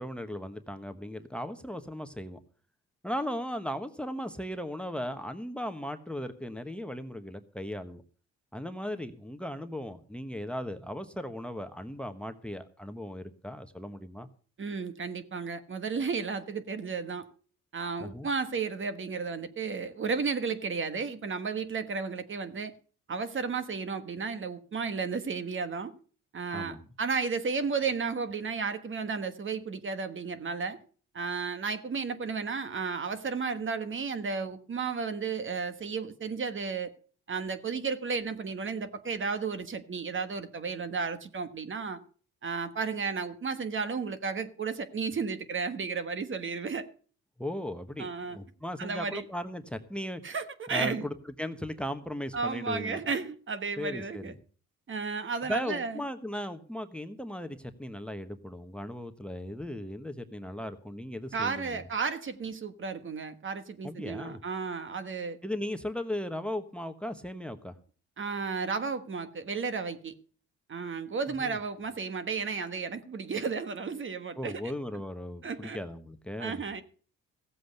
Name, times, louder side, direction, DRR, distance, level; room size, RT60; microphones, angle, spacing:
voice 1, 0.0-2.4 3.0-8.0 8.5-14.3 18.0-18.3 26.5-26.9 47.4-50.2 50.7-53.0 53.8-54.3 55.4-61.8 63.8-64.4 65.4-67.7 71.4-71.6 74.4-76.6, left 1 dB, 5° left, 1.0 m, -37 dB
voice 2, 14.6-17.3 17.7-22.7 23.1-25.9 26.3-30.8 31.1-36.9 37.3-42.0 42.4-46.9 48.0-48.4 48.8-49.3 50.2-51.0 52.3-54.3 54.9-56.0 61.3-65.4 68.2-70.1 70.7-74.6 75.4-75.8 76.4-76.8, right 5 dB, 40° right, 1.3 m, -33 dB
15.5 x 7.8 x 6.5 m
cardioid pair, 90°, 30 cm